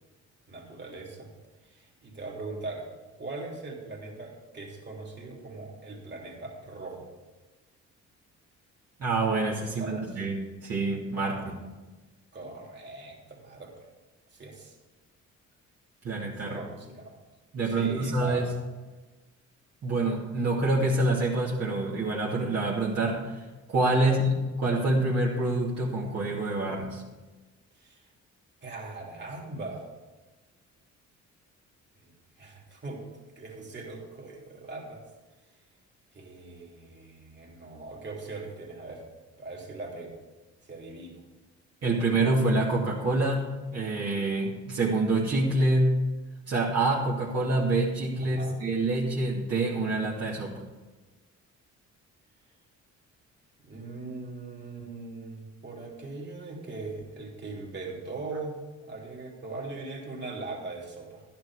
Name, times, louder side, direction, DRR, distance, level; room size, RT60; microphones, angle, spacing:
voice 1, 0.5-1.3 1.6-2.9 3.2-7.1 9.8-10.2 11.1-11.7 12.3-13.9 14.3-14.7 16.4-17.2 17.7-18.5 24.0-24.2 27.7-28.1 28.6-29.9 32.0-33.1 33.4-35.0 36.1-39.0 39.4-40.1 40.6-41.2 48.2-48.5 53.6-61.2, right 3 dB, 35° right, -1 dB, 3.2 m, -40 dB
voice 2, 9.0-11.6 16.0-16.7 17.5-18.5 19.8-27.0 41.8-46.0 46.5-50.5, right 2 dB, 55° right, -6 dB, 2.5 m, -26 dB
12.0 x 10.5 x 4.8 m, 1.2 s
cardioid pair, 90°, 30 cm